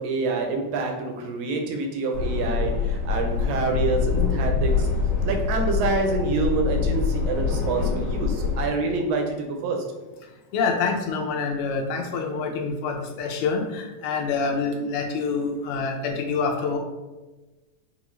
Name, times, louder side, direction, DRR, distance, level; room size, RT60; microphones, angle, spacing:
voice 1, 0.0-4.9 5.2-9.8, right 3 dB, 80° right, 2 dB, 1.5 m, -27 dB
sound 1, 2.1-8.7, left 5 dB, 60° left, 1.9 m, -25 dB
voice 2, 10.5-16.8, left 4 dB, 75° left, 1 dB, 1.7 m, -26 dB
7.0 x 2.4 x 3.1 m, 1.2 s
omnidirectional pair, 3.4 m